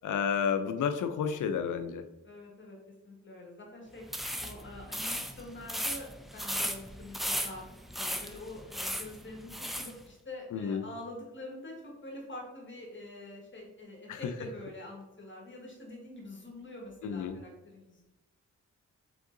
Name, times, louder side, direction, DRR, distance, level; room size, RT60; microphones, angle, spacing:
voice 1, 0.0-2.1 10.5-10.8 14.1-14.3 17.0-17.4, left 7 dB, 85° left, 9 dB, 0.5 m, -31 dB
voice 2, 2.2-2.8 3.0-4.0 4.4-7.6 7.9-18.0, left 1 dB, 40° left, -1 dB, 1.3 m, -46 dB
sound 1, 4.0-9.9, equal, ahead, 0.4 m, -36 dB
3.8 x 3.6 x 3.7 m, 1.0 s
cardioid pair, 65°, 30 cm